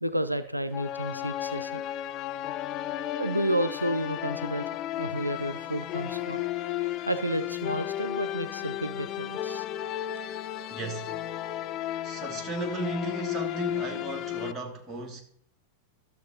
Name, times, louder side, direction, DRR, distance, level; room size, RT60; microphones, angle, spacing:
voice 1, 0.0-1.8 3.0-4.7 5.0-6.4 7.1-9.7 10.2-10.3 10.6-10.7 11.5-11.6 12.0-12.1, equal, 90° right, 0.3 m, -31 dB
sound 1, 0.7-14.5, left 13 dB, 35° left, 0.4 m, -34 dB
voice 2, 10.7-11.4 12.0-15.2, right 2 dB, 20° right, 1.4 m, -35 dB
13.0 x 6.6 x 2.7 m
figure-of-eight pair, 90°, 0 cm